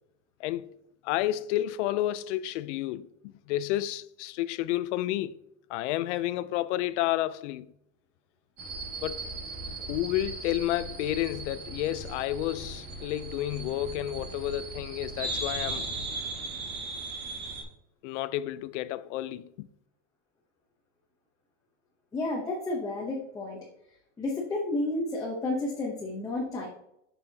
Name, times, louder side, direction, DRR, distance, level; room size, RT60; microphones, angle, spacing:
voice 1, 0.4-0.8 1.0-3.1 3.5-5.4 5.7-7.7 9.0-9.2 9.9-15.9 18.0-19.7, left 14 dB, 70° left, 0.5 m, -30 dB
sound 1, 8.6-17.6, right 3 dB, 30° right, 1.3 m, -37 dB
voice 2, 22.1-23.6 24.2-26.7, left 2 dB, 10° left, 0.7 m, -31 dB
6.8 x 5.6 x 2.7 m
supercardioid pair, 170°, 38 cm